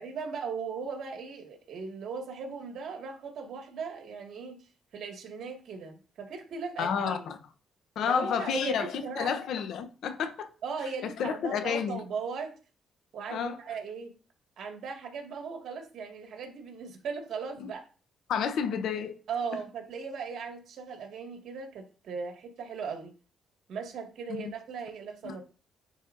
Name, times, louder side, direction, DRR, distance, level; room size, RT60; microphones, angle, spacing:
voice 1, 0.0-7.3 8.0-9.4 10.6-12.5 13.1-14.1 14.6-17.8 19.3-23.1 23.7-25.4, right 5 dB, 70° right, 1.9 m, -38 dB
voice 2, 6.8-7.3 8.0-10.5 11.0-12.0 13.3-13.6 17.6-17.7 18.3-19.2 25.2-25.3, left 7 dB, 75° left, 0.8 m, -30 dB
9.9 x 4.1 x 2.6 m
cardioid pair, 90°, 0 cm